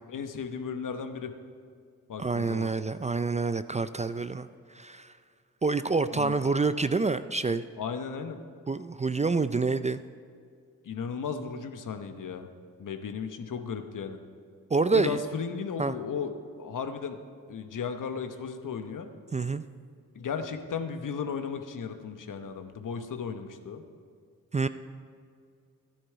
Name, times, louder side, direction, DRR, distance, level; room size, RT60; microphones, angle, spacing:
voice 1, 0.1-1.3 2.1-2.7 6.1-6.4 7.8-8.4 10.8-12.5 12.8-14.2 14.9-16.3 16.6-17.2 17.5-19.1 20.1-23.8, left 6 dB, 65° left, 7 dB, 1.0 m, -35 dB
voice 2, 2.2-5.1 5.6-7.6 8.7-10.0 14.7-15.2 15.8-15.9 19.3-19.6 24.5-24.7, right 4 dB, 20° right, 13 dB, 0.4 m, -27 dB
12.5 x 10.0 x 4.6 m, 2.2 s
supercardioid pair, 45°, 34 cm